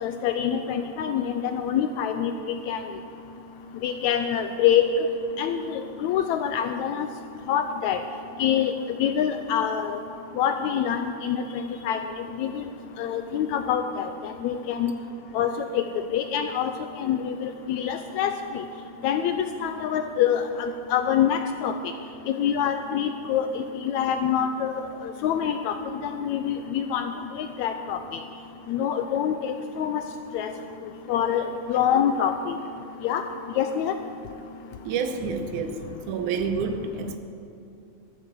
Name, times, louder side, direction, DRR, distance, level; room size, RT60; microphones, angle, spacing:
voice 1, 0.0-2.8 3.8-4.9 5.4-7.1 7.5-8.0 8.4-8.7 9.0-10.0 10.4-12.0 12.4-12.6 13.0-14.9 15.3-15.8 16.1-16.7 17.0-18.6 19.0-21.7 22.3-24.7 25.2-25.8 26.0-28.0 28.7-30.0 30.3-30.5 31.1-32.6 33.0-33.2 33.5-33.9, left 9 dB, 80° left, 8 dB, 1.7 m, -25 dB
voice 2, 34.8-37.2, right 6 dB, 75° right, 8 dB, 2.2 m, -29 dB
13.0 x 11.0 x 6.7 m, 2.6 s
omnidirectional pair, 3.7 m